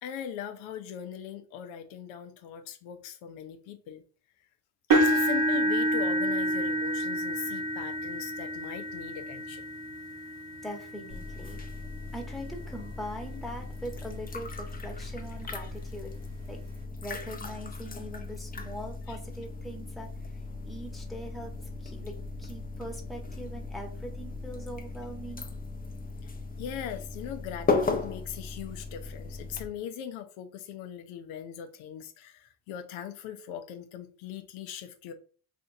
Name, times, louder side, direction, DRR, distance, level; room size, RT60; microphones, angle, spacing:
voice 1, 0.0-4.0 4.9-9.6 19.1-19.2 26.2-26.3 26.6-35.1, left 9 dB, 70° left, 0.6 m, -40 dB
sound 1, 4.9-12.9 13.6-13.8 14.2-14.3 15.7-15.8, right 1 dB, 45° right, 0.8 m, -29 dB
voice 2, 10.6-11.6 12.1-16.1 16.5-16.6 17.0-21.5 21.8-22.1 22.4-25.5, equal, ahead, 1.1 m, -41 dB
sound 2, 11.1-29.7, left 3 dB, 20° left, 0.6 m, -37 dB
3.3 x 2.5 x 2.6 m
supercardioid pair, 60°, 48 cm